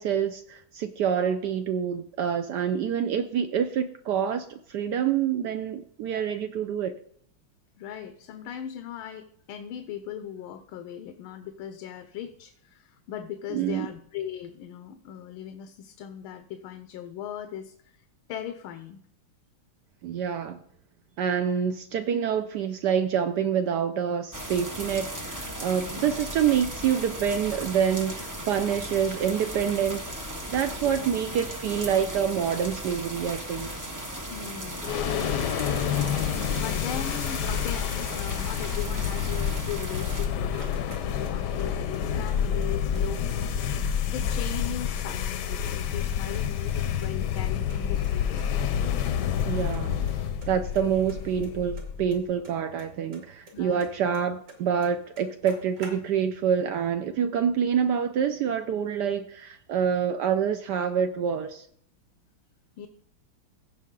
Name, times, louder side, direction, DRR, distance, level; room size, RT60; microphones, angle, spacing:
voice 1, 0.0-6.9 13.5-13.9 20.0-20.6 21.2-30.1 30.5-33.7 49.5-50.0 50.4-61.7, right 8 dB, 75° right, 8 dB, 1.0 m, -27 dB
voice 2, 7.8-18.0 18.3-19.0 26.0-26.1 30.8-31.0 34.3-35.5 36.1-48.5 50.8-50.9 53.5-53.9 62.8-62.9, left 9 dB, 85° left, 8 dB, 1.6 m, -39 dB
sound 1, 24.3-40.3, equal, 25° right, 0.4 m, -37 dB
sound 2, 34.8-52.2, left 8 dB, 65° left, 1.1 m, -28 dB
sound 3, 40.3-41.7 41.9-43.0 43.3-43.4 43.6-45.1 45.3-46.1 46.3-47.8 48.0-48.1 48.4-48.5 48.7-48.8 49.0-49.5 49.7-50.1 50.4-52.8 53.1-54.6 54.8-54.9 55.1-56.4, right 2 dB, 55° right, 2.9 m, -48 dB
15.5 x 5.6 x 3.8 m, 0.66 s
omnidirectional pair, 2.2 m